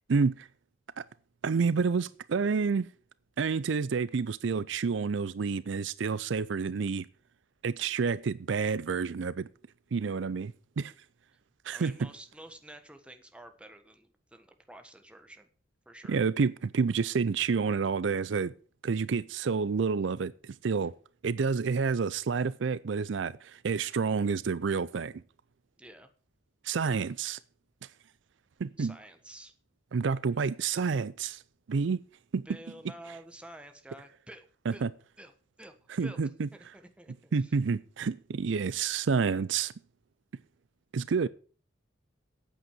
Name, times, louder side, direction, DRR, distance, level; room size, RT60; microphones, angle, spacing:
voice 1, 0.1-0.5 1.0-1.1 1.4-2.9 3.4-7.1 7.6-9.5 9.9-10.9 11.6-11.9 16.1-18.5 18.8-20.9 21.2-25.1 26.6-27.4 28.6-29.0 29.9-31.4 31.7-32.0 32.3-32.5 34.7-34.9 35.9-36.5 37.3-39.7 40.9-41.3, right 5 dB, 70° right, 0.4 m, -29 dB
voice 2, 11.7-15.5 15.8-16.2 25.8-26.1 28.8-29.5 32.4-34.5 34.7-34.9 35.2-35.3 35.6-35.7 36.0-36.2 36.5-37.5, right 1 dB, 5° right, 1.3 m, -49 dB
8.9 x 8.2 x 7.3 m
head